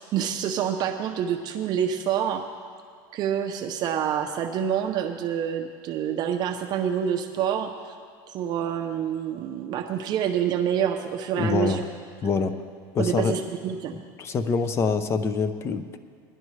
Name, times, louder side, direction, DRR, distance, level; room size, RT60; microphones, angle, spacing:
voice 1, 0.0-2.4 3.1-7.9 8.3-11.8 13.0-13.9, right 9 dB, 40° right, 4 dB, 0.6 m, -27 dB
voice 2, 11.4-11.8 12.2-12.5 12.9-13.4 14.2-16.0, left 5 dB, 25° left, 11 dB, 0.5 m, -25 dB
18.5 x 11.0 x 3.2 m, 2.2 s
supercardioid pair, 150°, 11 cm